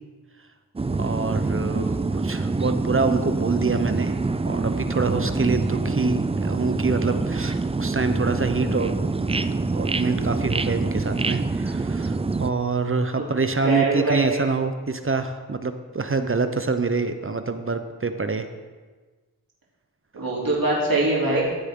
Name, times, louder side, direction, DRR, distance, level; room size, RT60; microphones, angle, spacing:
sound 1, 0.8-12.5, right 3 dB, 15° right, 0.4 m, -25 dB
voice 1, 1.0-4.2 4.4-18.5, right 4 dB, 35° right, 8 dB, 0.8 m, -26 dB
voice 2, 13.6-14.4 20.1-21.4, right 2 dB, 65° right, -5 dB, 3.2 m, -22 dB
15.0 x 8.2 x 3.8 m, 1.4 s
wide cardioid pair, 70°, 38 cm